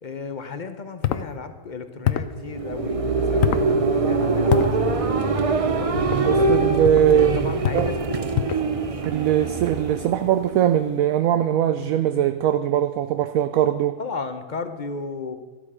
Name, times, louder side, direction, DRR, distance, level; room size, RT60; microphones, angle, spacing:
voice 1, 0.0-5.2 5.8-6.6 7.1-8.0 14.0-15.4, left 4 dB, 40° left, 9 dB, 0.7 m, -34 dB
sound 1, 1.0-1.3 2.0-2.4 3.4-3.7 4.5-4.7 6.0-6.2 6.8-7.1 7.6-7.9 8.3-8.7, left 11 dB, 65° left, 0.9 m, -24 dB
sound 2, 2.3-11.0, right 3 dB, 40° right, 0.5 m, -23 dB
voice 2, 6.3-7.9 9.0-14.0, right 10 dB, 70° right, 11 dB, 0.9 m, -21 dB
13.0 x 12.5 x 5.0 m, 1.2 s
omnidirectional pair, 1.6 m